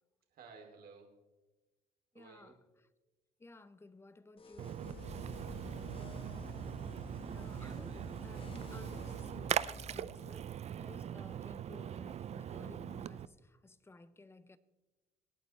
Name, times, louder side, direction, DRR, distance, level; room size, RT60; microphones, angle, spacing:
voice 1, 0.3-1.2 2.1-2.6 5.3-6.1, right 5 dB, 60° right, 3.0 m, -56 dB
voice 2, 2.1-2.6 3.4-4.8 7.3-14.6, left 3 dB, 15° left, 0.7 m, -56 dB
sound 1, 4.4-9.4, left 4 dB, 30° left, 1.0 m, -58 dB
Splash splatter, 4.6-13.3, right 9 dB, 40° right, 0.5 m, -41 dB
sound 2, 4.8-10.0, left 1 dB, 85° left, 1.5 m, -49 dB
24.5 x 9.1 x 3.2 m
cardioid pair, 110°, 17 cm